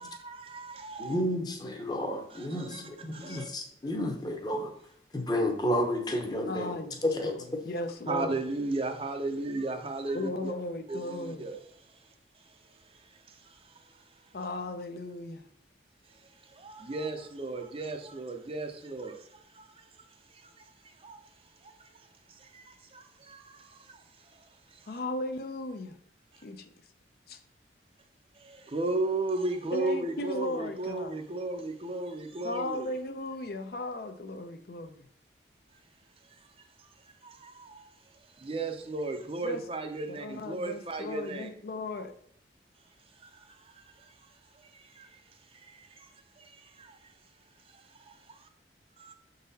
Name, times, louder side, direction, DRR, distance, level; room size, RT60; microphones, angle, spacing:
voice 1, 0.0-1.2 2.3-3.5 8.1-10.5 10.9-11.6 11.9-12.0 12.5-12.6 12.9-14.0 16.1-20.0 20.3-21.2 21.6-24.9 26.3-26.4 28.3-32.9 36.3-36.4 37.2-37.9 38.4-41.5 43.2-44.1 44.5-45.2 45.5-46.1 46.4-47.1 47.6-48.5 49.0-49.1, right 2 dB, 30° right, 0.5 m, -36 dB
voice 2, 1.0-4.7 5.1-6.7 7.0-7.4, left 1 dB, 20° left, 0.8 m, -31 dB
voice 3, 2.7-3.4 6.5-8.3 10.1-11.5 14.3-15.4 24.9-26.0 26.4-26.7 27.3-27.4 29.7-31.2 32.4-35.1 39.4-39.6 40.1-42.1, left 1 dB, 55° left, 0.5 m, -36 dB
6.3 x 4.0 x 4.0 m
head